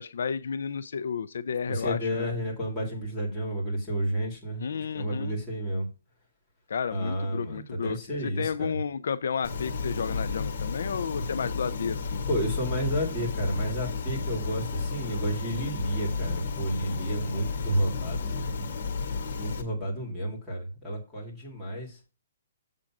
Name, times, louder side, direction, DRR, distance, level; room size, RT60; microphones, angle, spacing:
voice 1, 0.0-2.3 4.6-5.4 6.7-8.0 8.4-12.2, left 6 dB, 65° left, 0.4 m, -32 dB
voice 2, 1.7-4.6 4.9-5.9 6.9-8.7 12.3-18.5 19.4-22.0, right 1 dB, 5° left, 2.4 m, -31 dB
sound 1, 9.4-19.6, left 4 dB, 50° left, 1.6 m, -32 dB
7.5 x 3.7 x 5.9 m
hypercardioid pair, 175°, 0 cm